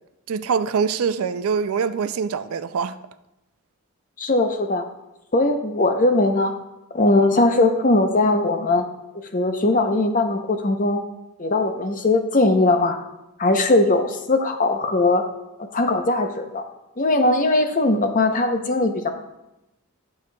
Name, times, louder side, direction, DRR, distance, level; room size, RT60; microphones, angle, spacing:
voice 1, 0.3-3.0, right 6 dB, 75° right, 0.4 m, -24 dB
voice 2, 4.2-4.9 5.3-6.5 6.9-8.8 9.1-11.0 11.4-13.0 13.4-15.3 15.6-16.6 17.0-19.1, left 2 dB, 35° left, 0.6 m, -20 dB
12.0 x 6.5 x 2.3 m
head